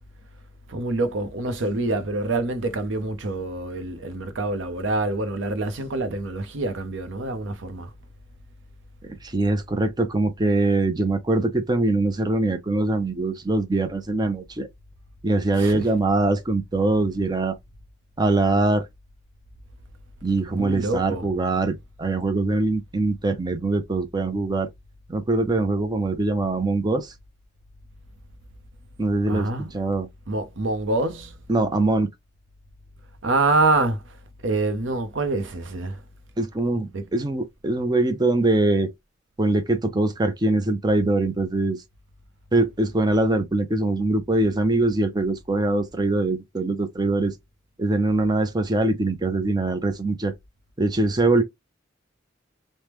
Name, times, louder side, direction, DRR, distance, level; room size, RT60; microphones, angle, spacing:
voice 1, 0.7-7.9 15.5-15.8 20.5-21.3 29.3-29.7 30.3-31.3 33.2-34.2 34.4-36.0 36.9-37.0, right 2 dB, 75° right, 0.6 m, -26 dB
voice 2, 9.0-14.7 15.2-17.6 18.2-18.9 20.2-24.7 25.1-27.1 29.0-30.1 31.5-32.1 36.4-38.9 39.4-41.8 42.5-47.4 47.8-50.3 50.8-51.4, right 2 dB, 20° right, 0.5 m, -23 dB
3.3 x 2.1 x 2.9 m
head